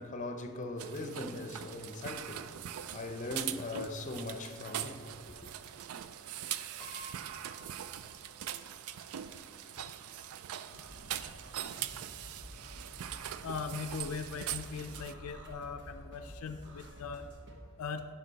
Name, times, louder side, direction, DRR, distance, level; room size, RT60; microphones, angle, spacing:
voice 1, 0.0-2.6 2.9-5.5, left 2 dB, 35° left, 0.6 m, -40 dB
sound 1, 0.8-15.1, right 10 dB, 75° right, 0.4 m, -42 dB
Piano, 6.8-8.6 8.9-9.0 10.2-10.3 10.6-10.8, equal, 10° left, 1.0 m, -52 dB
sound 2, 10.7-17.6, equal, 55° right, 1.2 m, -50 dB
voice 2, 13.4-17.3 17.8-18.0, left 5 dB, 75° left, 0.4 m, -40 dB
10.0 x 5.6 x 4.0 m
head